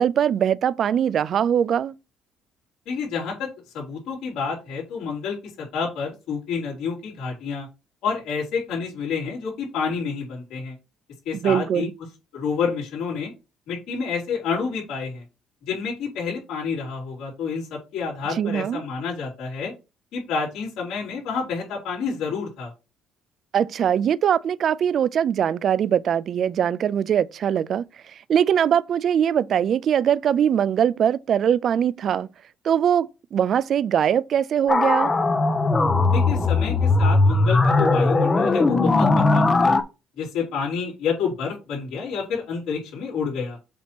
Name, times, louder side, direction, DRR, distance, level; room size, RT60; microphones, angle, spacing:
voice 1, 0.0-1.9 11.4-11.9 18.3-18.8 23.5-32.3 32.6-35.1, right 9 dB, 50° right, 0.3 m, -22 dB
voice 2, 2.9-3.5 3.7-7.7 8.0-10.7 11.3-11.9 12.3-13.3 13.7-15.2 15.7-19.7 20.1-22.7 36.1-39.8 40.2-43.6, left 5 dB, 80° left, 3.6 m, -29 dB
sound 1, 34.7-39.8, left 3 dB, 20° left, 0.8 m, -19 dB
7.1 x 2.9 x 6.0 m
cardioid pair, 125°, 0 cm